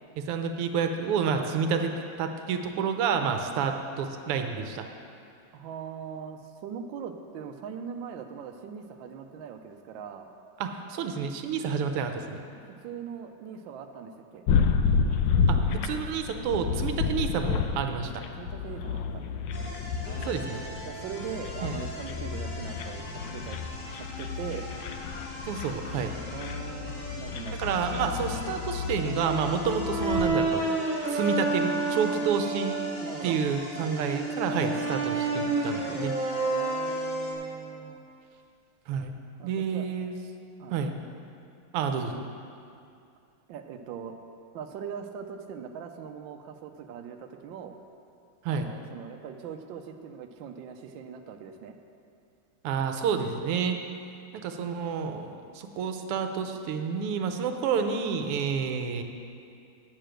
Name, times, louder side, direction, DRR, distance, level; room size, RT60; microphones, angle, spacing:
voice 1, 0.2-1.9 2.2-4.9 10.6-12.4 15.5-18.2 20.3-20.6 21.6-21.8 25.5-26.1 27.6-30.6 31.1-32.8 33.2-36.2 38.9-39.2 39.4-40.1 40.7-41.0 41.7-42.3 48.4-48.7 52.6-53.8 54.3-59.0, right 6 dB, 90° right, 6 dB, 1.7 m, -29 dB
voice 2, 5.5-10.3 12.2-14.4 17.8-17.9 18.4-19.2 20.0-23.6 23.9-24.7 26.3-27.8 33.0-33.4 36.4-38.0 39.4-39.9 40.6-40.8 43.5-44.1 44.5-47.7 48.4-51.8, right 7 dB, 70° right, 5 dB, 1.3 m, -41 dB
sound 1, 14.5-30.4, left 5 dB, 75° left, 1.1 m, -30 dB
sound 2, 19.5-37.3, left 1 dB, 50° left, 2.3 m, -43 dB
Brass instrument, 29.1-33.1 33.6-37.7, right 3 dB, 45° right, 1.3 m, -30 dB
8.8 x 6.8 x 7.6 m, 2.5 s
omnidirectional pair, 2.4 m